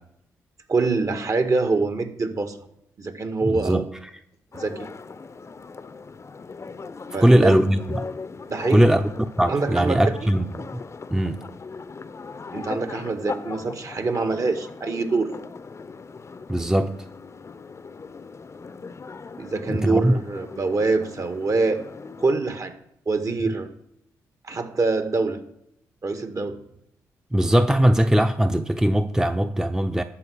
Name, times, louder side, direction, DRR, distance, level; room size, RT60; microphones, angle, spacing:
voice 1, 0.7-2.6 3.0-3.8 4.5-4.9 7.1-7.6 8.5-9.0 9.5-10.0 12.5-15.3 19.4-21.8 22.2-22.7 23.1-23.7 24.5-25.4 26.0-26.6, right 3 dB, 45° right, 1.8 m, -25 dB
voice 2, 3.4-3.9 7.2-8.1 8.7-9.1 9.4-10.8 11.1-11.4 16.5-16.9 19.7-20.1 27.3-30.0, right 1 dB, 5° right, 0.8 m, -20 dB
sound 1, 4.5-22.3, left 4 dB, 40° left, 0.8 m, -39 dB
12.5 x 4.6 x 8.4 m
hypercardioid pair, 45°, 8 cm